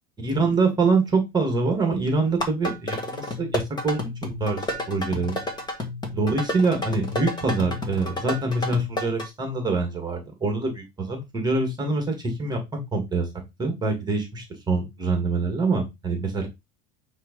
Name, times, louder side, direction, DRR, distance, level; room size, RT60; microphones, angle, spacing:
voice 1, 0.2-5.4 6.1-12.6 12.9-13.3 13.6-16.5, right 3 dB, 10° right, 4 dB, 1.7 m, -25 dB
sound 1, 2.3-9.3, left 2 dB, 15° left, 1.6 m, -31 dB
9.1 x 3.1 x 5.2 m, 0.22 s
cardioid pair, 170°, 33 cm